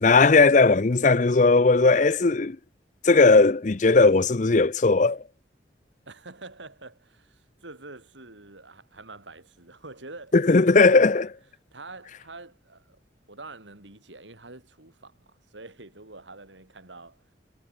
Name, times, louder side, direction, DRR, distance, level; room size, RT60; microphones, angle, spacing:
voice 1, 0.0-2.6 3.0-5.2 10.3-11.3, left 3 dB, 40° left, 0.6 m, -18 dB
voice 2, 6.1-10.3 11.7-13.0 13.3-17.2, right 3 dB, 90° right, 4.8 m, -46 dB
head